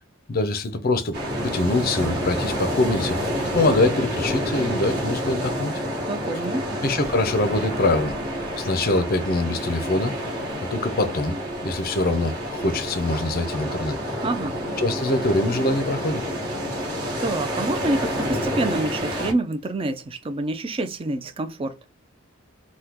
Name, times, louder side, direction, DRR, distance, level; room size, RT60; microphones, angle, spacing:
voice 1, 0.3-1.2 1.4-3.2 3.5-5.7 6.8-8.1 8.6-10.1 10.6-11.4 11.6-14.0 14.8-16.2, left 2 dB, 45° left, 0.5 m, -23 dB
sound 1, 1.1-19.3, equal, 50° right, 1.3 m, -28 dB
voice 2, 6.1-6.7 14.2-14.6 17.2-21.8, right 2 dB, 25° right, 0.3 m, -27 dB
3.5 x 2.2 x 2.9 m
head